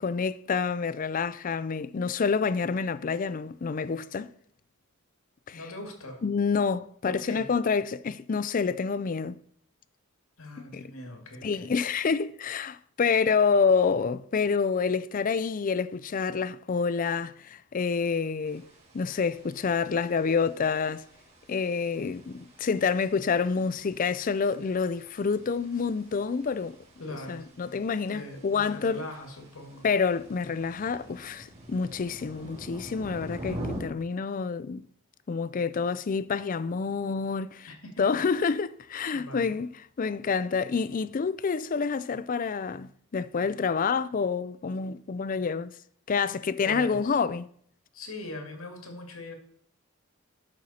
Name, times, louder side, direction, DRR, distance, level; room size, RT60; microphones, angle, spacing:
voice 1, 0.0-4.3 5.5-5.6 6.2-9.4 10.6-10.9 11.4-18.7 18.9-21.0 21.5-26.8 27.3-29.0 29.8-34.9 35.3-37.7 38.0-39.7 40.0-45.7 46.1-47.5, left 5 dB, 40° left, 0.4 m, -28 dB
voice 2, 5.5-6.2 7.0-7.5 10.4-11.7 27.0-27.5 28.1-29.9 37.7-38.0 39.1-39.6 46.6-47.2 47.9-49.3, left 1 dB, 90° left, 2.3 m, -41 dB
sound 1, 18.4-33.8, equal, 30° right, 2.5 m, -46 dB
12.0 x 6.4 x 4.3 m
head